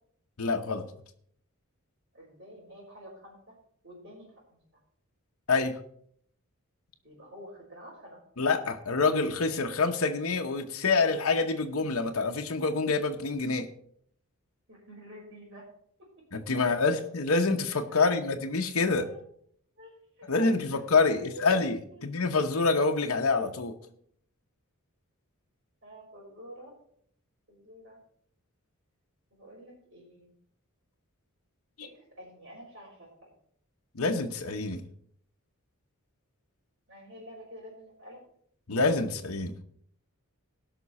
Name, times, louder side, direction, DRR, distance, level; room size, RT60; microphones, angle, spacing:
voice 1, 0.4-0.9 5.5-5.8 8.4-13.7 16.3-19.1 20.3-23.7 34.0-34.8 38.7-39.5, left 4 dB, 70° left, 3 dB, 0.9 m, -26 dB
voice 2, 2.1-3.6 3.8-4.6 7.0-8.2 14.7-15.6 16.5-17.0 17.9-18.1 19.0-19.2 19.8-19.9 20.2-21.5 21.9-22.0 23.8-23.9 25.8-26.7 27.5-28.0 29.3-30.3 31.8-33.3 36.9-38.2, equal, 55° right, -8 dB, 4.2 m, -48 dB
18.0 x 6.0 x 4.2 m, 0.64 s
head